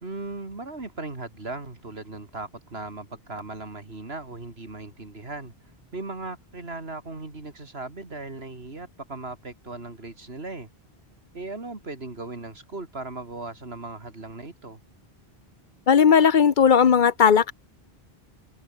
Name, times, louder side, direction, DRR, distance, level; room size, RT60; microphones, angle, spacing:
voice 1, 0.0-5.5 5.9-10.7 11.3-14.8, right 3 dB, 80° right, 3.5 m, -37 dB
voice 2, 15.9-17.5, left 7 dB, 55° left, 0.9 m, -17 dB
open air
omnidirectional pair, 1.0 m